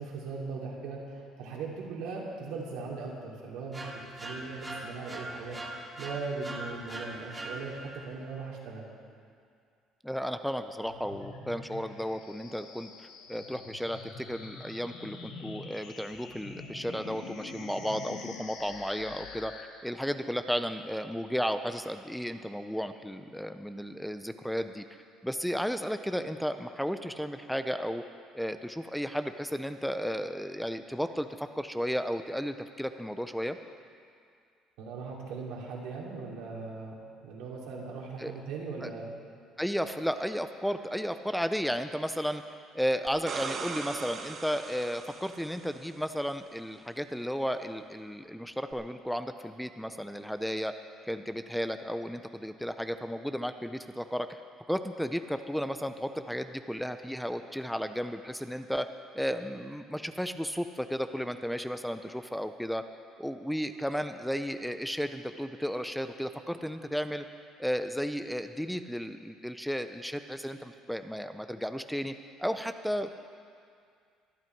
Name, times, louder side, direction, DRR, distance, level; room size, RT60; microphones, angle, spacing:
voice 1, 0.0-5.6 6.0-8.9 34.8-39.1, right 4 dB, 80° right, -2 dB, 2.9 m, -39 dB
sound 1, 3.7-8.1, right 1 dB, 20° right, 1.6 m, -41 dB
voice 2, 10.0-19.5 19.8-28.0 28.3-33.6 38.2-38.3 38.8-38.9 39.6-42.4 42.7-50.7 51.0-54.4 54.7-58.9 59.1-62.8 63.2-67.3 67.6-72.1 72.4-73.1, equal, ahead, 9 dB, 0.5 m, -33 dB
sound 2, 10.8-19.6, left 4 dB, 85° left, 1.6 m, -45 dB
sound 3, 43.1-45.9 48.7-48.8, right 5 dB, 40° right, 1.0 m, -39 dB
23.5 x 8.9 x 4.6 m, 2.3 s
cardioid pair, 120°, 0 cm